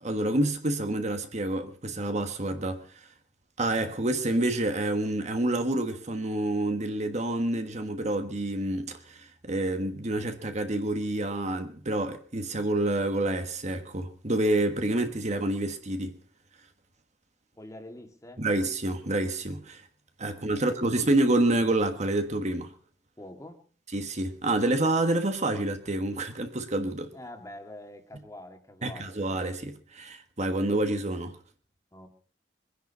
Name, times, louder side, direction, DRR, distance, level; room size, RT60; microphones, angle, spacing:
voice 1, 0.0-2.8 3.6-16.1 18.4-19.8 20.2-22.7 23.9-27.1 28.8-31.4, right 1 dB, 40° right, 1.5 m, -28 dB
voice 2, 17.6-18.4 20.3-20.9 23.2-23.6 27.1-29.1 31.9-32.1, left 1 dB, 20° left, 2.1 m, -45 dB
23.0 x 10.0 x 5.5 m
head